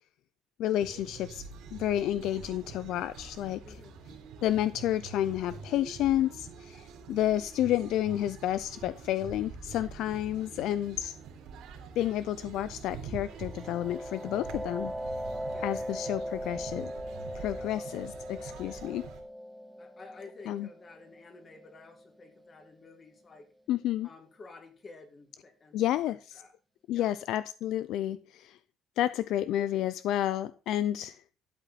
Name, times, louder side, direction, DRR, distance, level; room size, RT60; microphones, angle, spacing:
voice 1, 0.6-1.4 1.7-3.8 4.4-11.2 12.0-14.9 15.6-16.9 17.3-19.1 20.5-20.7 23.7-24.1 25.7-26.4 26.9-28.6 29.0-31.2, left 12 dB, 60° left, 0.5 m, -30 dB
sound 1, 0.8-19.2, right 5 dB, 65° right, 3.4 m, -46 dB
voice 2, 3.6-3.9 15.5-15.7 17.6-17.7 19.8-23.5 24.0-26.5 26.9-27.1, left 3 dB, 25° left, 2.0 m, -52 dB
sound 2, 13.2-22.7, equal, 10° right, 0.5 m, -40 dB
12.5 x 8.1 x 4.0 m
cardioid pair, 180°, 0 cm